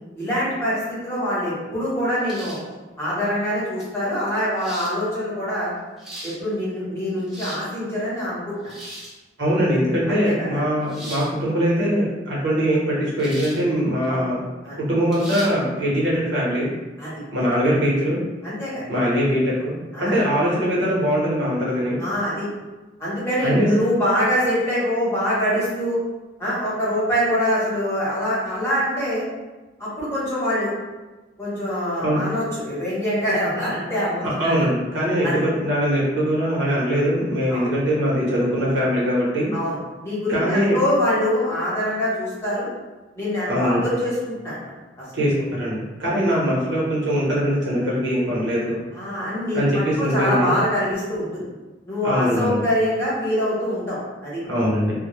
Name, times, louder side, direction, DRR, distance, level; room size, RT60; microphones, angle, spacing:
voice 1, 0.1-2.6 3.0-5.7 6.2-8.7 10.1-10.6 14.1-14.3 14.6-14.8 17.0-17.1 18.4-19.1 19.9-20.2 22.0-22.5 23.0-26.0 26.4-29.2 29.8-30.7 31.4-34.7 35.2-35.4 37.5-37.7 39.5-39.8 40.0-42.7 43.2-44.7 46.0-46.2 48.9-51.4 51.9-54.4, equal, 15° left, -10 dB, 0.9 m, -24 dB
sound 1, 2.3-2.7 3.8-3.9 4.6-4.9 5.8-6.4 7.1-7.7 8.6-9.2 10.9-11.3 13.2-13.6 14.0-14.1 15.1-15.5, right 1 dB, ahead, 0.5 m, -37 dB
voice 2, 9.4-14.4 14.8-16.7 17.3-18.2 18.9-22.0 23.4-23.7 32.0-32.2 34.4-39.5 40.3-40.8 43.5-43.8 45.1-48.8 49.5-50.5 52.0-52.6 54.4-54.9, equal, 85° right, -6 dB, 0.9 m, -22 dB
2.1 x 2.1 x 3.0 m, 1.2 s
head